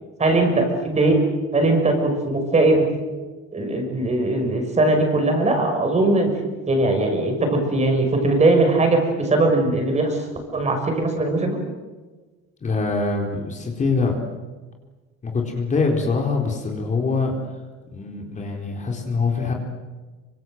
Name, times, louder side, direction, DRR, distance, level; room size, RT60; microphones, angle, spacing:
voice 1, 0.2-1.2 1.5-2.9 3.5-6.3 6.7-10.2 10.5-11.6, right 2 dB, 25° right, 4 dB, 6.4 m, -20 dB
voice 2, 12.6-14.2 15.2-17.4 17.9-19.5, left 4 dB, 25° left, 1 dB, 4.3 m, -24 dB
26.5 x 26.0 x 7.9 m, 1.3 s
cardioid pair, 140°, 30 cm